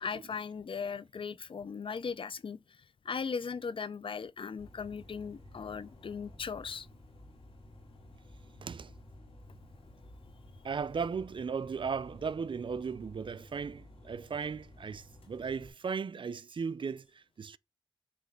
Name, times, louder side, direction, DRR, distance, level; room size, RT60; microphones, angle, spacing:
voice 1, 0.0-2.6 3.0-6.9, left 6 dB, 65° left, 0.5 m, -38 dB
sound 1, 4.6-15.7, left 1 dB, 85° left, 2.3 m, -54 dB
voice 2, 8.6-8.9 10.6-17.6, right 6 dB, 60° right, 0.4 m, -36 dB
7.7 x 3.1 x 5.1 m
cardioid pair, 50°, 10 cm